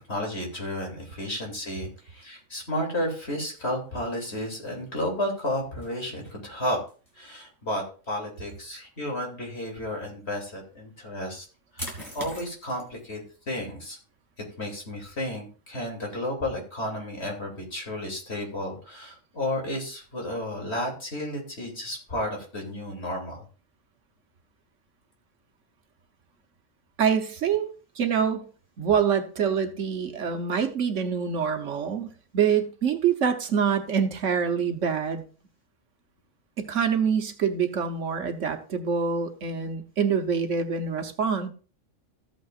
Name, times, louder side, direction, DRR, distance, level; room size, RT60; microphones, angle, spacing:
voice 1, 0.1-6.8 7.2-11.5 11.7-14.0 14.6-23.4, left 1 dB, 55° left, 0 dB, 3.0 m, -32 dB
sound 1, 1.9-18.6, equal, 15° left, 2.3 m, -49 dB
voice 2, 27.0-27.7 27.9-28.5 28.8-35.2 36.6-41.5, right 7 dB, 65° right, 6 dB, 1.3 m, -25 dB
14.0 x 8.3 x 2.4 m, 0.37 s
omnidirectional pair, 1.4 m